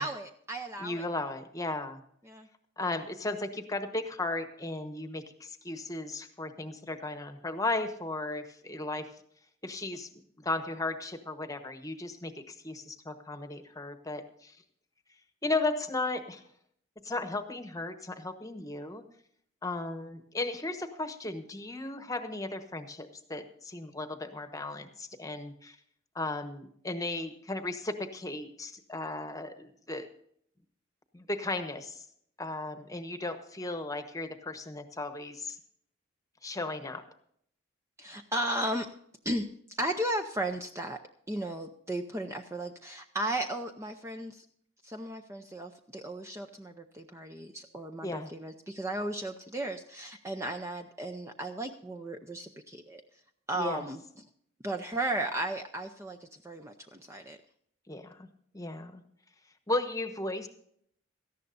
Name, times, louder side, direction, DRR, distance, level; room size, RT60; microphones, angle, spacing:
voice 1, 0.0-1.0 2.3-2.5 38.0-38.9 39.2-41.0 41.3-44.4 44.8-53.0 53.5-54.0 54.6-57.4, right 1 dB, 15° right, 5 dB, 0.6 m, -35 dB
voice 2, 0.8-2.0 2.8-9.1 9.6-10.1 10.4-14.6 15.4-16.4 17.0-19.0 19.6-25.8 26.1-30.1 31.1-32.1 32.4-35.6 36.4-37.0 48.0-48.3 53.6-53.8 57.9-58.3 58.5-59.0 59.7-60.5, left 2 dB, 15° left, 8 dB, 1.1 m, -35 dB
18.0 x 14.0 x 2.6 m, 0.66 s
head